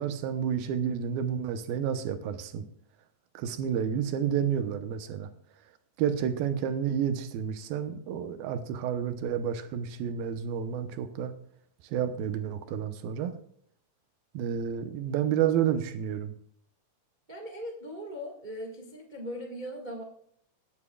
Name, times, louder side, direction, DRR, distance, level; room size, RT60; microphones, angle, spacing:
voice 1, 0.0-2.6 3.3-5.3 6.0-11.3 11.9-13.4 14.3-16.3, right 8 dB, 90° right, 9 dB, 2.8 m, -30 dB
voice 2, 17.3-20.0, equal, 45° right, 0 dB, 0.5 m, -39 dB
18.5 x 9.1 x 2.4 m, 0.66 s
omnidirectional pair, 4.1 m